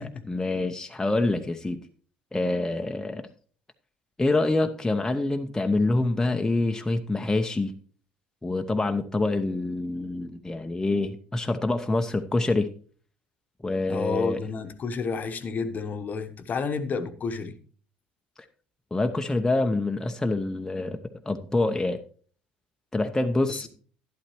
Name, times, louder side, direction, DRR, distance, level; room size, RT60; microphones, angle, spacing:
voice 1, 0.3-1.8 2.3-3.3 4.2-7.7 8.4-12.7 13.6-14.4 18.9-21.0 21.3-22.0 22.9-23.7, left 2 dB, 10° left, 0.8 m, -26 dB
voice 2, 13.9-17.5 23.5-23.7, left 5 dB, 35° left, 1.1 m, -30 dB
11.5 x 11.5 x 3.1 m
figure-of-eight pair, 60°, 5 cm